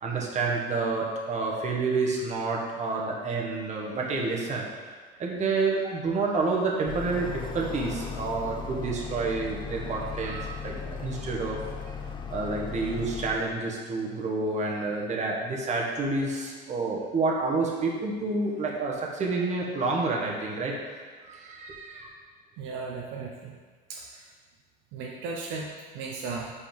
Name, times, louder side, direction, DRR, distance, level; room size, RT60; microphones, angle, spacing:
voice 1, 0.0-4.7 5.2-11.6 12.3-20.7 21.2-22.1, right 3 dB, 35° right, -1 dB, 1.4 m, -29 dB
sound 1, 6.9-13.4, left 6 dB, 20° left, 0.6 m, -37 dB
voice 2, 22.6-23.5 23.9-24.2 24.9-26.5, right 4 dB, 65° right, -1 dB, 0.8 m, -36 dB
5.1 x 4.2 x 5.2 m, 1.5 s
supercardioid pair, 100°, 21 cm